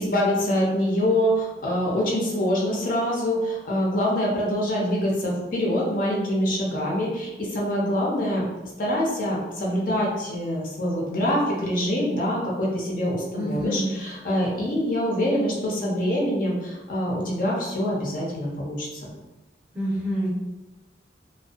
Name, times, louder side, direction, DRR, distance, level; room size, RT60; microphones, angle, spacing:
voice 1, 0.0-8.5 8.8-19.1, equal, 50° left, -3 dB, 0.6 m, -25 dB
voice 2, 13.3-13.9 19.7-20.3, equal, 5° right, -7 dB, 0.6 m, -27 dB
2.5 x 2.2 x 2.3 m, 1.1 s
head